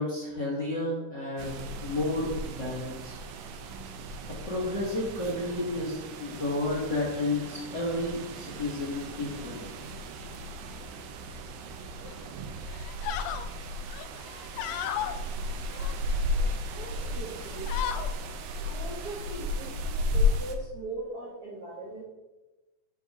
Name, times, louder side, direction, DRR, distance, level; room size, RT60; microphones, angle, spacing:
voice 1, 0.0-3.1 4.3-9.7, left 2 dB, 45° left, -5 dB, 1.5 m, -32 dB
sound 1, 1.4-20.6, left 2 dB, 90° right, 2.4 m, -34 dB
sound 2, 12.0-12.3 12.7-13.5 13.9-15.2 15.7-16.6 17.0-17.2 17.5-18.1, left 10 dB, 80° left, 1.8 m, -35 dB
voice 2, 16.8-18.0 18.6-22.0, right 2 dB, 60° right, -5 dB, 1.0 m, -40 dB
7.0 x 4.6 x 4.8 m, 1.1 s
omnidirectional pair, 3.9 m